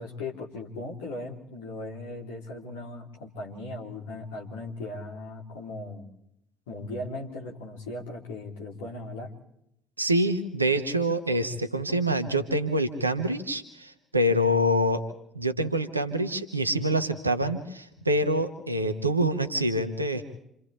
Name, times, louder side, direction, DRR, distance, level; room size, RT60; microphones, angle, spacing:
voice 1, 0.0-6.1 6.7-9.3, left 2 dB, 70° left, -1 dB, 3.4 m, -38 dB
voice 2, 10.0-15.0 15.3-20.2, right 1 dB, 85° right, 9 dB, 1.2 m, -26 dB
28.5 x 27.5 x 3.4 m, 0.79 s
figure-of-eight pair, 50°, 0 cm